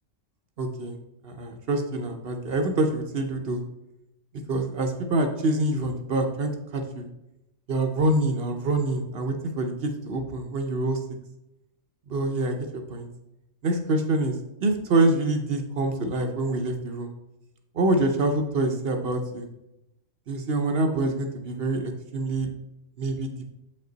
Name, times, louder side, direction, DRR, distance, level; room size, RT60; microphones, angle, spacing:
voice 1, 0.6-1.0 1.2-3.6 4.5-7.1 7.7-11.0 12.1-12.6 12.9-13.1 13.6-14.3 14.6-17.1 17.7-19.5 20.3-22.5 23.0-23.5, right 2 dB, 55° right, 5 dB, 0.9 m, -26 dB
7.3 x 5.4 x 3.9 m, 0.91 s
omnidirectional pair, 1.3 m